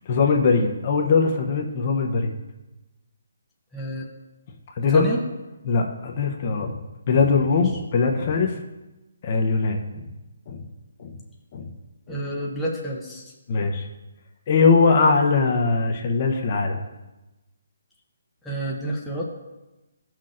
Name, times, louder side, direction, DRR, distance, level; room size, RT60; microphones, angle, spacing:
voice 1, 0.1-2.3 4.8-5.0 5.7-6.8 7.1-8.6 9.2-10.1 10.5-10.7 11.0-11.2 11.5-11.7 12.1-12.2 13.5-13.9 14.5-16.8, left 4 dB, 35° left, 3 dB, 0.8 m, -21 dB
voice 2, 3.7-4.1 4.8-5.2 7.5-7.6 12.1-13.7 18.4-19.2, right 1 dB, 5° left, -5 dB, 0.8 m, -30 dB
15.5 x 5.9 x 2.5 m, 1.1 s
hypercardioid pair, 165°, 0 cm